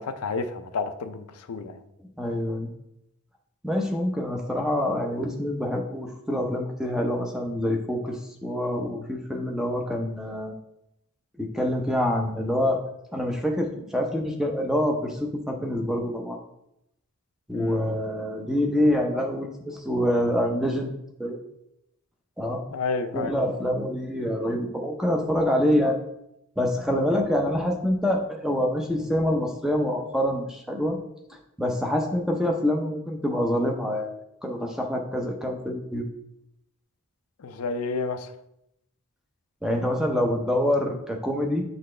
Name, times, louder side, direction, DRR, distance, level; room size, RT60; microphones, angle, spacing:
voice 1, 0.0-1.8 17.5-17.8 22.7-23.3 37.4-38.3, left 4 dB, 85° left, 9 dB, 0.5 m, -30 dB
voice 2, 2.2-2.7 3.6-10.5 11.4-12.8 13.1-16.4 17.5-21.4 22.4-22.6 23.1-26.0 26.6-31.0 31.6-34.1 34.4-36.1 39.6-41.6, left 1 dB, ahead, 2 dB, 0.6 m, -26 dB
7.6 x 4.1 x 3.2 m, 0.81 s
head